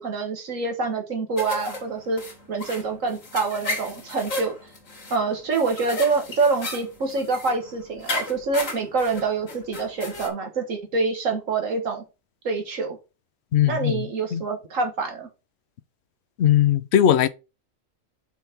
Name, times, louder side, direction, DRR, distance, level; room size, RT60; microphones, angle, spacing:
voice 1, 0.0-2.2 2.5-4.6 5.1-12.0 12.4-13.0 13.7-15.3, right 4 dB, 90° right, 2.0 m, -26 dB
sound 1, 1.4-10.3, left 2 dB, 85° left, 2.3 m, -35 dB
voice 2, 13.5-14.0 14.3-14.4 16.4-17.3, left 10 dB, 65° left, 0.8 m, -19 dB
5.8 x 4.2 x 5.9 m
omnidirectional pair, 1.3 m